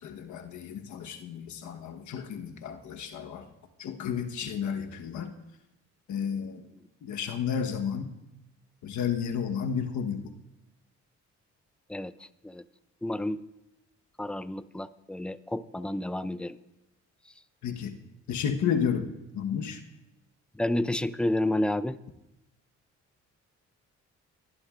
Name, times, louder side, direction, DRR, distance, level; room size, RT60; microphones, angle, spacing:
voice 1, 0.0-3.5 3.8-5.4 6.1-6.7 7.0-8.1 8.8-10.2 17.6-17.9 18.3-19.1 19.3-19.8, left 7 dB, 75° left, 4 dB, 1.3 m, -32 dB
voice 2, 13.0-13.4 14.2-16.6 20.6-22.0, left 1 dB, 5° left, 14 dB, 0.4 m, -30 dB
29.5 x 11.0 x 2.5 m, 0.95 s
cardioid pair, 90°, 30 cm